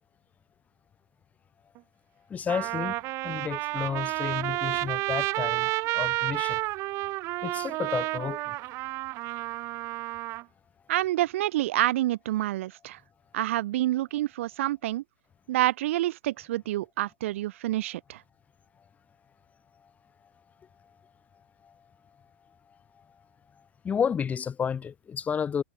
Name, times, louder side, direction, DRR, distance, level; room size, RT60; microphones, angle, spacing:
Trumpet, 1.8-1.9 2.5-10.4, right 20 dB, 40° right, 0.4 m, -31 dB
voice 1, 2.3-6.6 7.4-8.6 8.8-8.9 21.6-21.8 23.8-25.6, left 7 dB, 20° left, 1.3 m, -31 dB
voice 2, 10.9-13.0 13.3-15.0 15.5-18.2, right 15 dB, 65° right, 2.0 m, -28 dB
hypercardioid pair, 120°, 7 cm